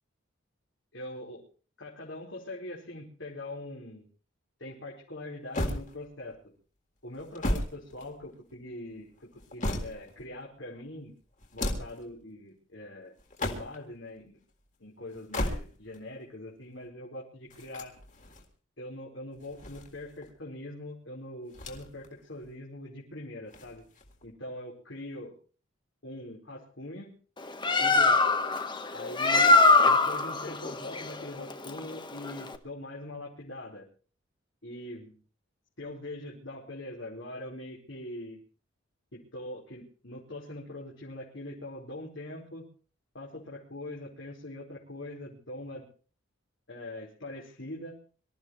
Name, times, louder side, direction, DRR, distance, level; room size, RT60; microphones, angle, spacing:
voice 1, 0.9-1.4 1.8-4.1 4.6-6.4 7.0-11.1 11.5-13.1 13.4-14.4 14.8-17.9 18.8-23.8 24.2-25.3 26.0-27.1 27.8-28.3 28.9-29.6 29.8-33.9 34.6-35.1 35.8-38.4 39.1-42.7 43.1-45.9 46.7-48.0, left 1 dB, 65° left, -4 dB, 4.9 m, -42 dB
sound 1, 5.5-6.4 7.1-8.5 9.2-10.2 11.4-12.1 13.2-13.9 15.1-16.0 17.5-18.5 19.4-20.3 21.5-22.1 22.4-22.5 23.5-24.3, left 1 dB, 40° left, 3.8 m, -35 dB
Bird, 27.4-32.6, left 3 dB, 25° left, 1.4 m, -23 dB
25.5 x 14.5 x 3.2 m, 0.39 s
head